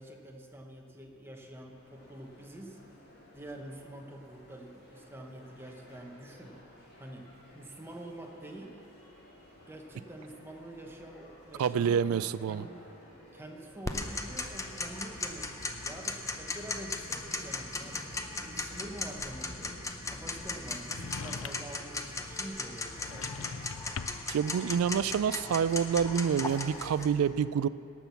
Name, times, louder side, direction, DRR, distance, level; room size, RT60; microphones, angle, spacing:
voice 1, 0.0-2.8 3.3-7.3 7.5-8.8 9.7-12.2 12.5-12.8 13.3-18.1 18.4-19.8 20.1-23.5, right 1 dB, 10° right, 2 dB, 1.0 m, -46 dB
sound 1, 1.4-19.2, left 1 dB, 50° left, 2.7 m, -57 dB
voice 2, 11.6-12.6 24.3-27.7, right 7 dB, 70° right, 18 dB, 0.3 m, -27 dB
Tick-tock, 13.8-27.1, left 3 dB, 15° left, 0.6 m, -38 dB
sound 2, 20.9-21.8 22.9-24.4, left 5 dB, 65° left, 0.4 m, -42 dB
18.0 x 6.0 x 7.0 m, 2.8 s
head